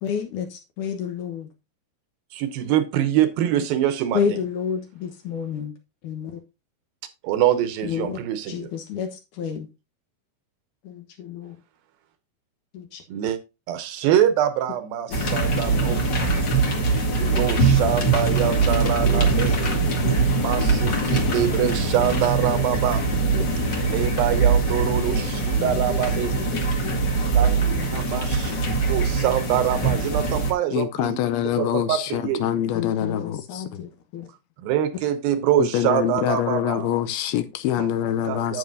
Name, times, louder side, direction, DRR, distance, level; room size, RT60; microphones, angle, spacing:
voice 1, 0.0-1.5 4.1-5.7 6.0-6.4 7.8-8.2 8.5-9.7 10.8-11.6 12.7-13.0 15.1-16.0 17.3-17.4 19.0-20.2 22.5-22.7 23.3-23.4 25.6-26.0 26.4-26.5 26.8-27.0 27.6-27.9 32.7-34.3, left 7 dB, 65° left, 2.3 m, -31 dB
voice 2, 2.3-4.2 7.2-8.7 13.1-13.4 13.7-16.1 17.2-19.6 20.3-23.1 23.8-26.3 27.3-27.6 27.9-28.5 28.9-32.5 34.6-36.9 37.8-37.9 38.2-38.6, right 10 dB, 75° right, 2.5 m, -24 dB
sound 1, 15.1-30.5, right 3 dB, 40° left, 1.7 m, -22 dB
voice 3, 30.7-33.6 35.6-38.6, left 11 dB, 85° left, 2.5 m, -25 dB
9.4 x 8.2 x 2.7 m
omnidirectional pair, 4.5 m